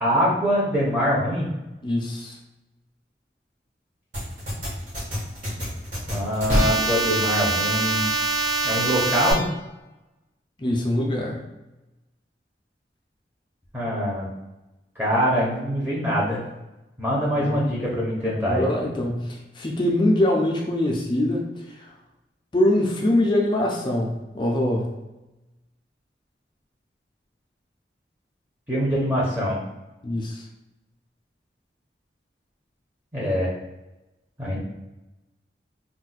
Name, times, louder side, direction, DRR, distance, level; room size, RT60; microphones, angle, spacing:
voice 1, 0.0-1.5 6.1-8.1 8.6-9.4 13.7-14.3 15.0-16.4 17.0-18.7 28.7-29.6 33.1-33.5 34.4-34.6, equal, 10° right, -6 dB, 0.7 m, -23 dB
voice 2, 1.8-2.4 10.6-11.4 17.4-17.6 18.5-21.4 22.5-24.9 30.0-30.4, left 1 dB, 25° left, 0 dB, 0.4 m, -23 dB
sound 1, 4.1-9.3, right 2 dB, 45° right, 1.1 m, -24 dB
2.4 x 2.2 x 3.9 m, 1.0 s
head